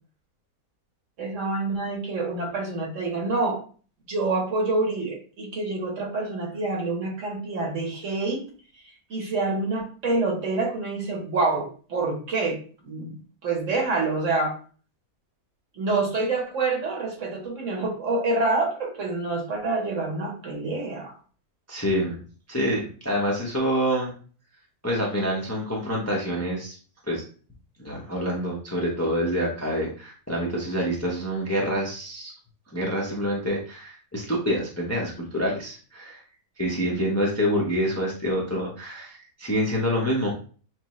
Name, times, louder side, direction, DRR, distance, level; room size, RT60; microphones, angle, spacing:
voice 1, 1.2-3.6 4.1-8.4 9.1-12.6 12.8-13.1 13.4-14.5 15.8-21.1 36.8-37.0, right 3 dB, 60° right, 2 dB, 1.3 m, -27 dB
voice 2, 21.7-22.2 22.5-24.1 24.8-26.8 27.1-27.2 27.8-32.3 32.7-36.2 36.6-40.3, equal, 15° left, -3 dB, 0.6 m, -27 dB
6.1 x 2.1 x 3.0 m, 0.40 s
omnidirectional pair, 1.6 m